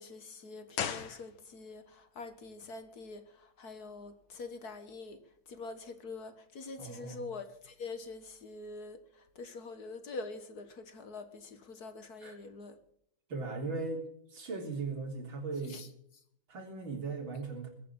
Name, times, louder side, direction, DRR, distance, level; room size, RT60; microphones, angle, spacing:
voice 1, 0.0-1.8 2.2-3.2 3.6-5.2 5.5-9.0 9.4-12.7 15.7-15.9, left 3 dB, 50° left, 1.8 m, -45 dB
sound 1, 0.7-2.1, left 8 dB, 85° left, 2.0 m, -38 dB
voice 2, 6.8-7.2 12.2-12.4 13.3-15.8 16.5-17.7, right 3 dB, 80° right, 4.4 m, -38 dB
22.0 x 8.9 x 7.2 m
omnidirectional pair, 2.2 m